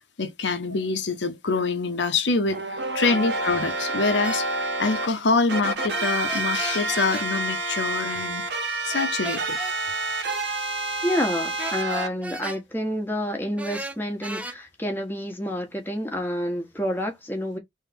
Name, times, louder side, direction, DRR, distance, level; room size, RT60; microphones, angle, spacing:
voice 1, 0.2-8.6 8.8-9.6, left 4 dB, 80° left, 0.9 m, -25 dB
sound 1, 2.5-5.1 5.5-12.1, right 2 dB, 70° right, 1.4 m, -28 dB
sound 2, 4.2-4.4 6.3-7.3 8.9-9.8 11.6-12.6 13.6-14.6, right 2 dB, 5° right, 0.7 m, -35 dB
voice 2, 11.0-17.6, equal, 10° left, 1.2 m, -28 dB
3.7 x 3.2 x 4.2 m
head